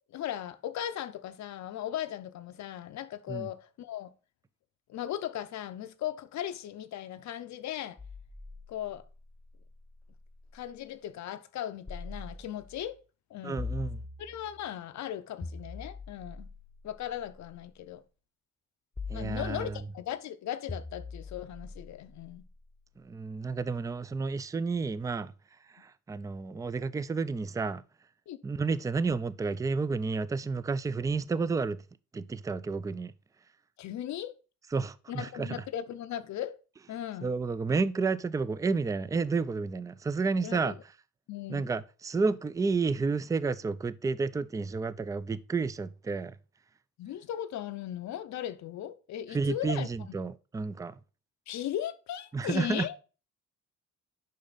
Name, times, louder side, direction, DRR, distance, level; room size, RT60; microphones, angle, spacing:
voice 1, 0.1-4.1 4.9-8.0 8.7-9.0 10.5-13.0 13.3-13.6 14.2-16.5 16.8-18.0 19.1-22.4 28.3-28.4 33.8-34.3 35.1-36.6 36.9-37.3 40.4-40.7 41.3-41.7 47.0-49.9 51.5-53.0, left 11 dB, 65° left, 0.6 m, -37 dB
sound 1, 8.0-10.7 11.9-12.9 13.6-14.7 15.4-17.7 19.0-20.1 20.7-22.8, left 4 dB, 10° left, 0.8 m, -43 dB
voice 2, 13.4-14.0 19.1-19.8 23.0-25.3 25.7-27.8 28.4-31.8 32.1-33.1 34.7-35.6 37.2-40.8 41.5-46.3 49.3-50.9 52.3-52.9, right 4 dB, 10° right, 0.3 m, -31 dB
6.6 x 5.3 x 4.0 m
cardioid pair, 90°, 30 cm